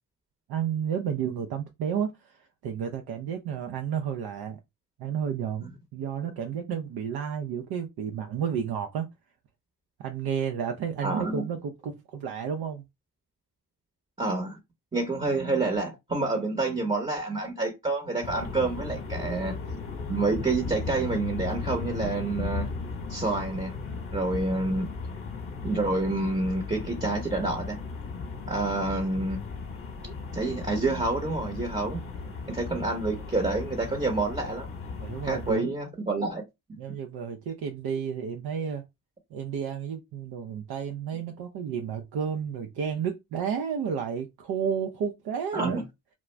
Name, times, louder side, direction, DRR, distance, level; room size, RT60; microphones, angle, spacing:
voice 1, 0.5-4.6 5.0-9.1 10.0-12.8 28.5-29.0 32.2-32.3 35.0-35.7 36.8-38.8 39.3-45.8, right 7 dB, 65° right, 0.6 m, -32 dB
voice 2, 11.0-11.4 14.2-14.6 14.9-19.6 20.1-22.7 23.1-23.8 24.1-24.9 25.6-27.8 28.5-29.5 30.0-32.0 32.5-34.7 35.2-36.4 45.5-45.8, right 3 dB, 15° right, 0.8 m, -28 dB
sound 1, 18.2-35.5, left 4 dB, 30° left, 1.0 m, -36 dB
2.3 x 2.0 x 3.2 m
supercardioid pair, 60°, 41 cm